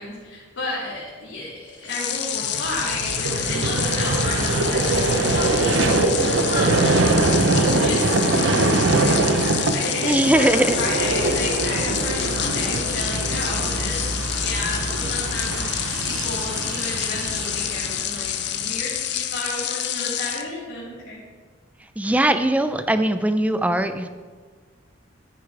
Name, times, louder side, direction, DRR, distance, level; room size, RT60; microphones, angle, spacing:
voice 1, 0.0-1.5 1.8-21.2, left 2 dB, 75° left, -8 dB, 2.7 m, -32 dB
sound 1, 1.8-20.5, left 11 dB, 60° left, 0.6 m, -28 dB
Vehicle, 2.4-18.8, right 2 dB, 85° right, 0.7 m, -23 dB
voice 2, 10.0-10.8 21.8-24.1, right 1 dB, 5° right, 9 dB, 0.4 m, -20 dB
12.0 x 9.2 x 3.4 m, 1.5 s
head